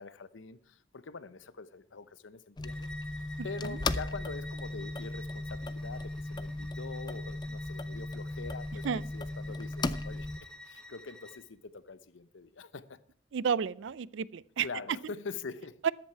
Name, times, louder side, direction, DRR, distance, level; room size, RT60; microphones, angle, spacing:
voice 1, 0.0-2.9 3.4-13.0 14.6-15.9, left 4 dB, 80° left, 0.7 m, -44 dB
sound 1, 2.6-10.4, left 2 dB, 20° left, 0.4 m, -37 dB
Bowed string instrument, 2.6-11.4, left 1 dB, 5° left, 0.9 m, -50 dB
voice 2, 13.3-14.7 15.8-15.9, right 7 dB, 75° right, 0.4 m, -31 dB
13.5 x 10.5 x 4.5 m
head